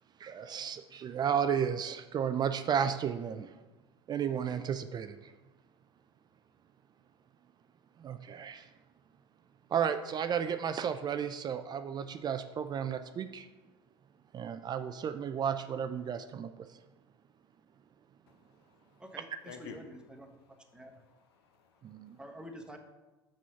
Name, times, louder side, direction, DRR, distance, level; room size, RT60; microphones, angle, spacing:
voice 1, 0.2-3.5 4.1-5.3 8.0-8.7 9.7-13.5 14.3-16.7 21.8-22.2, right 8 dB, 30° right, 10 dB, 0.4 m, -33 dB
voice 2, 18.3-19.0 19.4-19.8 20.3-22.2, left 6 dB, 70° left, 5 dB, 1.1 m, -53 dB
voice 3, 19.0-20.4 20.7-20.9 22.2-22.8, equal, 5° right, 3 dB, 1.2 m, -48 dB
6.1 x 6.1 x 5.6 m, 1.2 s
figure-of-eight pair, 75°, 14 cm